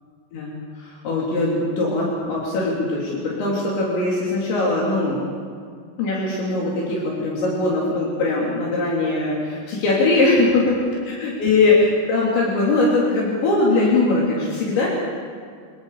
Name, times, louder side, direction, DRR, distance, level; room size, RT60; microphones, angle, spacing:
voice 1, 0.3-5.2 6.0-10.5 11.1-14.9, left 2 dB, 75° left, -5 dB, 6.0 m, -21 dB
28.0 x 27.0 x 5.2 m, 2.1 s
omnidirectional pair, 5.2 m